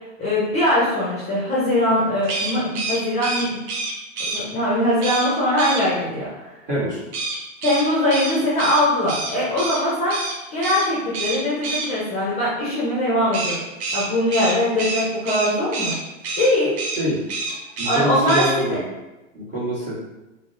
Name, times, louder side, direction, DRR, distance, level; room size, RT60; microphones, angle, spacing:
voice 1, 0.2-3.6 4.3-6.3 7.6-10.2 10.5-13.6 13.9-16.0 16.4-16.7 17.8-18.8, left 1 dB, 15° left, -8 dB, 0.5 m, -21 dB
sound 1, 2.2-4.4 5.0-5.3 5.6-5.8 7.1-9.8 10.1-10.3 10.6-10.9 11.1-11.9 13.3-16.0 16.2-16.5 16.8-17.0 17.3-18.0 18.3-18.5, right 3 dB, 55° right, 0.6 m, -27 dB
voice 2, 6.7-7.0 17.0-17.2 17.8-18.8 19.3-19.9, right 1 dB, 20° right, -8 dB, 1.1 m, -25 dB
2.7 x 2.0 x 2.6 m, 1.0 s
hypercardioid pair, 130°, 40 cm